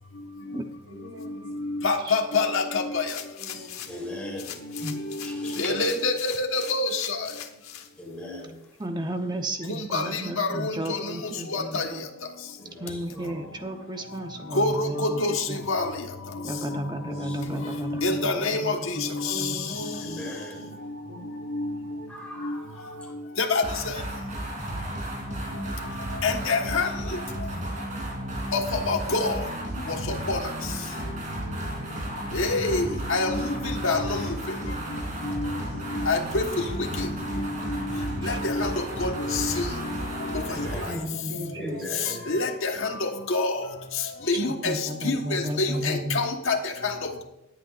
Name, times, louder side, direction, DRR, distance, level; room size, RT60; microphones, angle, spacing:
voice 1, 0.9-1.4 3.4-3.7 8.1-8.3 19.3-20.2 21.1-21.2 35.5-36.1 37.9-38.4 41.3-42.2, equal, 65° right, 0 dB, 4.1 m, -42 dB
voice 2, 1.5-3.2 4.6-7.3 9.7-11.9 14.5-16.1 16.7-16.8 17.2-17.4 17.6-20.3 20.6-20.8 21.1-21.8 22.0-22.1 22.4-22.6 23.4-23.9 26.2-27.2 28.5-29.4 29.9-30.4 32.3-34.6 35.2-35.5 35.9-36.4 36.8-37.1 37.4-40.9 42.3-43.7 44.3-47.2, left 3 dB, 65° left, 3 dB, 1.4 m, -27 dB
sound 1, 3.1-4.0 4.4-7.9 8.4-8.5, left 10 dB, 85° left, 1.1 m, -41 dB
voice 3, 3.9-4.6 5.2-5.6 8.0-8.6 12.6-13.4 17.0-17.7 20.0-20.8 22.1-23.1 40.4-41.0 41.6-42.4, left 1 dB, 5° left, -3 dB, 3.4 m, -39 dB
voice 4, 8.8-12.1 12.8-15.6 16.4-20.0 38.2-38.4 40.9-42.2 44.3-46.2, right 1 dB, 20° right, 5 dB, 0.9 m, -34 dB
sound 2, 23.6-41.0, right 1 dB, 35° right, 3.1 m, -33 dB
18.5 x 8.9 x 2.5 m, 0.88 s
head